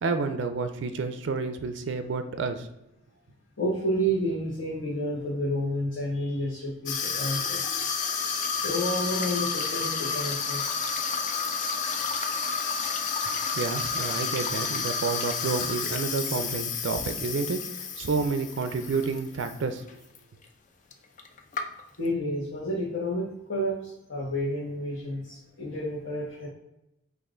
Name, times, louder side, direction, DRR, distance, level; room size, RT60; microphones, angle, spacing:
voice 1, 0.0-2.7 13.5-19.8, right 4 dB, 70° right, 8 dB, 0.4 m, -30 dB
voice 2, 3.6-7.6 8.6-10.6 22.0-26.5, equal, 65° left, -8 dB, 1.1 m, -30 dB
Water tap faucet / Sink (filling or washing), 6.9-19.6 19.9-20.2 20.9-21.0 21.2-22.1, left 5 dB, 40° left, 0.4 m, -30 dB
sound 1, 9.3-14.5, right 1 dB, 20° left, 1.6 m, -51 dB
sound 2, 19.9-20.1, equal, ahead, 0.9 m, -50 dB
5.4 x 2.5 x 3.7 m, 0.87 s
head